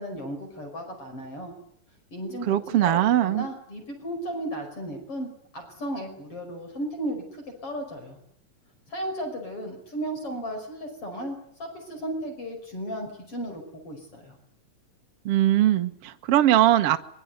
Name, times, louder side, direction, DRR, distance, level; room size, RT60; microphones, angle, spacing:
voice 1, 0.0-1.5 2.1-8.2 8.9-14.4, right 1 dB, 40° left, 4 dB, 6.5 m, -35 dB
voice 2, 2.5-3.5 15.3-17.0, right 12 dB, 55° right, 8 dB, 1.8 m, -21 dB
24.0 x 24.0 x 9.5 m, 0.65 s
omnidirectional pair, 4.0 m